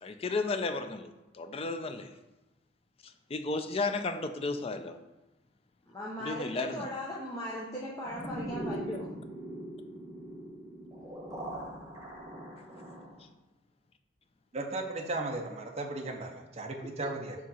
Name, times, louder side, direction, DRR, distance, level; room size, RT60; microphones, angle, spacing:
voice 1, 0.0-2.1 3.3-4.9 6.2-6.9, left 3 dB, 30° left, 8 dB, 0.4 m, -33 dB
voice 2, 5.9-9.1 16.8-17.1, equal, 15° left, -6 dB, 0.8 m, -38 dB
sound 1, 8.0-13.2, right 1 dB, 15° right, 1.2 m, -41 dB
voice 3, 14.5-17.4, right 2 dB, 35° right, 2 dB, 0.6 m, -36 dB
4.7 x 3.6 x 5.5 m, 1.0 s
head